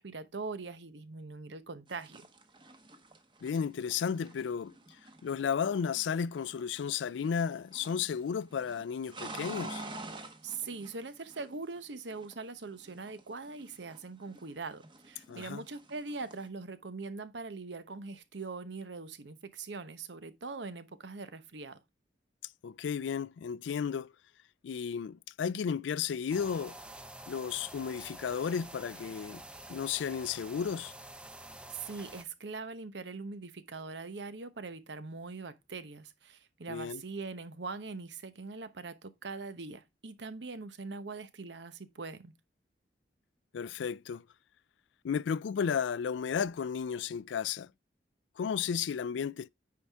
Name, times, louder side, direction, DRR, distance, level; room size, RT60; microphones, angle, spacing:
voice 1, 0.0-2.3 10.4-21.8 25.5-25.6 31.7-42.3, right 4 dB, 80° right, 0.9 m, -42 dB
sound 1, 1.9-6.8 7.1-8.1 8.3-11.8 12.1-14.5 14.8-16.5, right 2 dB, 25° right, 1.0 m, -48 dB
voice 2, 3.4-4.7 5.2-9.8 15.3-15.6 22.6-24.1 24.6-26.8 27.3-29.4 29.7-30.9 36.7-37.0 43.5-44.2 45.0-47.7 48.4-49.5, left 7 dB, 90° left, 0.3 m, -33 dB
sound 2, 26.3-32.2, right 1 dB, 5° right, 0.5 m, -48 dB
9.5 x 4.8 x 3.4 m
head